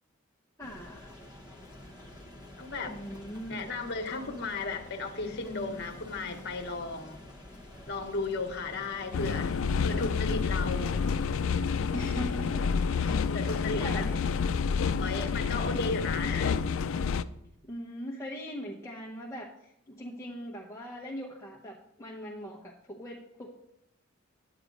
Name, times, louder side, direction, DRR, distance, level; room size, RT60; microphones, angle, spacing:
voice 1, 0.6-1.1 2.9-3.7 11.9-14.2 17.6-23.5, equal, 15° left, -2 dB, 0.8 m, -41 dB
sound 1, 0.6-14.2, left 1 dB, 20° right, 1.0 m, -49 dB
voice 2, 2.6-3.0 3.5-7.2 7.9-9.5 9.8-11.0 13.3-14.0 15.0-16.7, left 3 dB, 55° left, 6 dB, 1.2 m, -34 dB
sound 2, 9.1-17.2, left 5 dB, 75° left, 0.4 m, -29 dB
10.5 x 9.2 x 3.9 m, 0.85 s
head